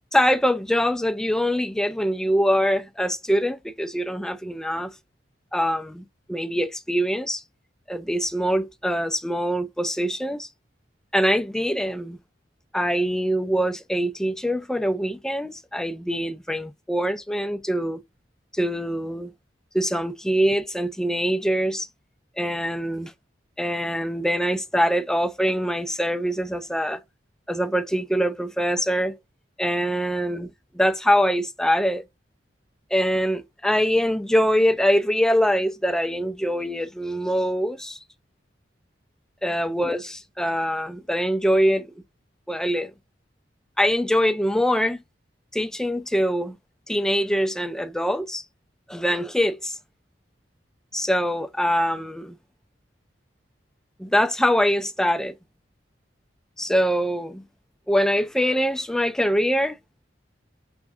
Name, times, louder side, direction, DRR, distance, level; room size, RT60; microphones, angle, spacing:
voice 1, 0.1-4.9 5.5-7.4 7.9-10.5 11.1-12.2 12.7-18.0 18.5-19.3 19.7-21.9 22.4-23.1 23.6-27.0 27.5-29.2 29.6-32.0 32.9-38.0 39.4-41.9 42.5-42.9 43.8-45.0 45.5-46.6 46.9-48.4 48.9-49.8 50.9-52.4 54.0-55.3 56.6-57.4 57.9-59.8, equal, 5° left, 0.3 m, -23 dB
6.0 x 3.4 x 2.3 m
head